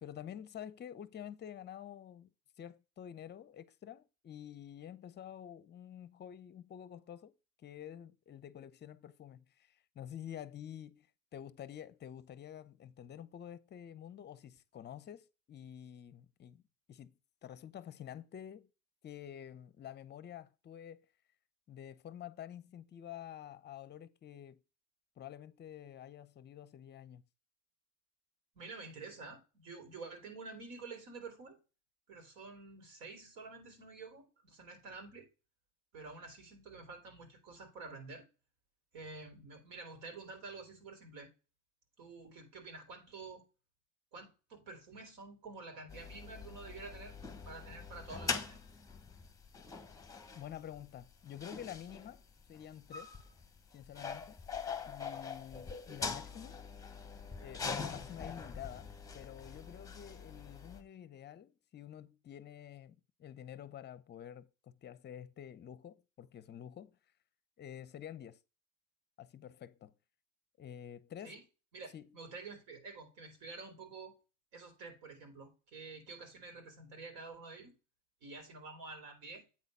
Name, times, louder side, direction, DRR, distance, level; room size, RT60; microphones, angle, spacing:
voice 1, 0.0-2.3 2.6-7.3 7.6-11.1 11.3-16.6 16.9-17.1 17.4-18.7 19.0-21.0 21.7-24.6 25.2-27.2 50.3-52.2 52.5-53.1 53.7-54.4 54.9-56.7 57.4-66.9 67.6-68.4 69.2-69.9 70.6-71.3 71.9-72.1, left 10 dB, 30° left, 0.7 m, -49 dB
voice 2, 28.5-31.6 32.1-35.3 35.9-38.3 38.9-41.3 42.0-43.4 44.1-47.2 47.4-48.6 71.2-71.4 71.7-74.1 74.5-77.7 78.2-79.4, right 3 dB, 65° right, 4.2 m, -49 dB
sound 1, 45.9-60.8, left 5 dB, 10° left, 1.2 m, -43 dB
8.7 x 4.0 x 5.4 m
supercardioid pair, 105°, 38 cm